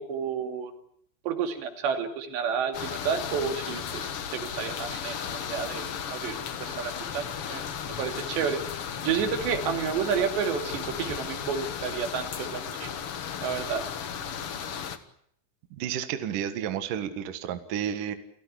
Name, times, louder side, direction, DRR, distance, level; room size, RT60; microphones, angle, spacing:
voice 1, 0.1-0.7 1.2-7.2 7.5-7.6 8.0-8.6 9.0-13.0 13.4-13.8, right 7 dB, 80° right, 7 dB, 4.7 m, -30 dB
rain medium, 2.7-15.0, left 8 dB, 70° left, 1.3 m, -35 dB
voice 2, 15.7-18.2, right 9 dB, 60° right, 10 dB, 2.9 m, -31 dB
29.5 x 17.0 x 10.0 m, 0.67 s
omnidirectional pair, 4.9 m